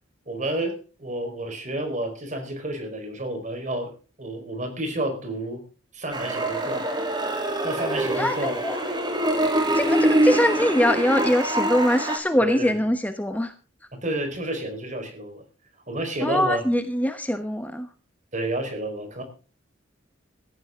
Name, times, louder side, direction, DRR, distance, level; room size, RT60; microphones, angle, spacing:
voice 1, 0.3-3.9 4.2-5.6 5.9-6.8 7.6-8.6 12.4-12.7 13.9-15.4 15.9-16.6 18.3-19.2, right 1 dB, 40° right, 6 dB, 4.5 m, -30 dB
sound 1, 6.1-12.2, right 1 dB, 25° right, 3.2 m, -24 dB
voice 2, 8.1-8.8 9.2-13.5 16.2-17.9, equal, 10° left, 8 dB, 1.1 m, -23 dB
17.5 x 14.5 x 3.7 m, 0.37 s
head